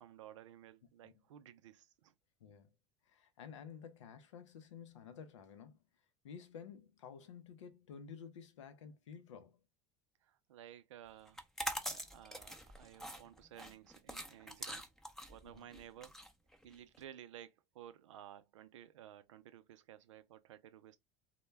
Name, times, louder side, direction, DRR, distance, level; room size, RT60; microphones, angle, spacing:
voice 1, 0.0-2.1 10.2-11.4 11.9-14.8 15.3-16.1 16.6-21.0, right 11 dB, 85° right, 0.4 m, -55 dB
voice 2, 2.4-2.7 3.0-5.8 6.2-9.6 15.4-15.7, left 7 dB, 85° left, 0.5 m, -52 dB
sound 1, 11.3-17.0, equal, 5° left, 0.5 m, -44 dB
2.1 x 2.1 x 3.2 m
hypercardioid pair, 85°, 15 cm